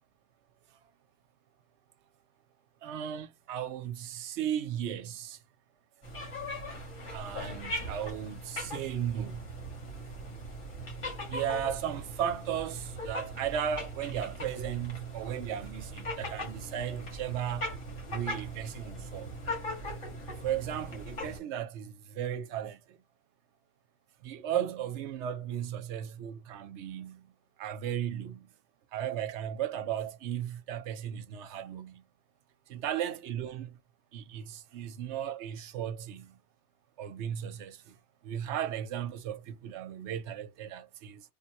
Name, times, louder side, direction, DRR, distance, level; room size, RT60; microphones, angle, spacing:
voice 1, 2.8-5.4 7.1-9.5 11.3-17.7 18.1-19.3 20.4-23.0 24.2-27.2 27.6-28.5 28.9-32.0 32.7-33.8 34.1-36.4 37.0-37.9 38.2-41.2, right 9 dB, 70° right, 0.8 m, -35 dB
sound 1, 6.0-21.4, equal, 85° left, 1.9 m, -39 dB
3.5 x 2.1 x 2.9 m
omnidirectional pair, 1.3 m